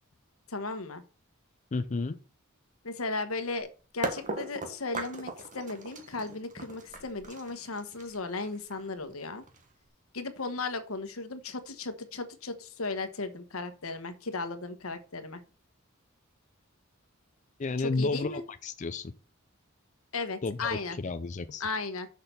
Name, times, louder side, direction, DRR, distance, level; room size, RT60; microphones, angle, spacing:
voice 1, 0.5-1.0 2.8-3.7 3.9-9.4 10.1-15.4 17.8-18.4 20.1-21.0 21.6-22.1, left 3 dB, 85° left, 1.2 m, -36 dB
voice 2, 1.7-2.2 17.6-19.1 20.4-21.6, left 3 dB, 35° left, 0.5 m, -32 dB
sound 1, 3.6-3.7 4.0-9.9, right 2 dB, 40° right, 1.5 m, -38 dB
6.6 x 5.8 x 6.7 m
head